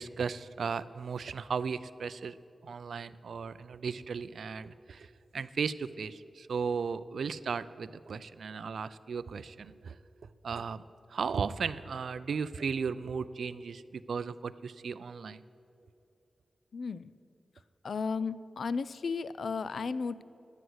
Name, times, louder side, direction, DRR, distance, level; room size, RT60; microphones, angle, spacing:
voice 1, 0.0-2.4 2.6-10.0 10.4-10.8 11.1-15.4, right 5 dB, 80° right, 15 dB, 0.3 m, -36 dB
voice 2, 16.7-17.1 17.8-20.2, left 5 dB, 75° left, 17 dB, 0.3 m, -34 dB
11.5 x 9.4 x 6.3 m, 2.7 s
cardioid pair, 55°, 0 cm